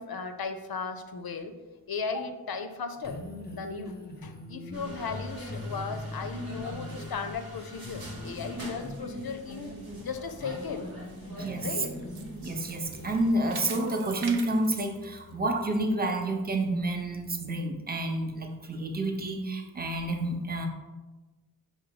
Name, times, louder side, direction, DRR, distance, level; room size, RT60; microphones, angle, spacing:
voice 1, 0.0-1.5 1.9-3.2 3.5-10.9 11.6-11.9, left 5 dB, 70° left, 7 dB, 0.5 m, -36 dB
sound 1, 3.0-15.6, left 1 dB, 25° left, 0.6 m, -43 dB
sound 2, 4.7-13.3, right 1 dB, 65° right, 1.1 m, -44 dB
sound 3, 10.9-15.8 16.2-16.3 16.9-17.0, right 5 dB, 90° right, 0.5 m, -45 dB
voice 2, 11.3-11.7 12.4-20.7, right 1 dB, 25° right, 3 dB, 0.6 m, -29 dB
4.8 x 2.2 x 4.7 m, 1.2 s
wide cardioid pair, 40°, 38 cm